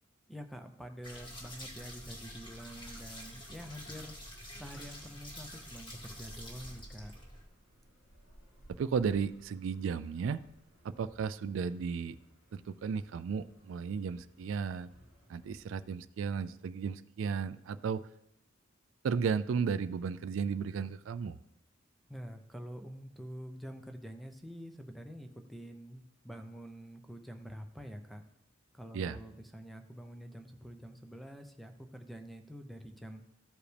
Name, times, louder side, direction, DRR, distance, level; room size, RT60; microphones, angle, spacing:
voice 1, 0.3-4.2 4.5-7.1 22.1-28.2 28.7-33.2, equal, ahead, 6 dB, 0.6 m, -47 dB
sound 1, 1.0-7.4, equal, 25° left, 1.9 m, -47 dB
sound 2, 6.0-15.6, right 1 dB, 65° left, 2.8 m, -59 dB
voice 2, 8.8-10.4 10.8-12.2 12.5-14.9 15.3-18.0 19.0-21.4 28.9-29.2, right 6 dB, 75° right, 14 dB, 0.3 m, -34 dB
14.0 x 4.9 x 3.3 m, 0.84 s
head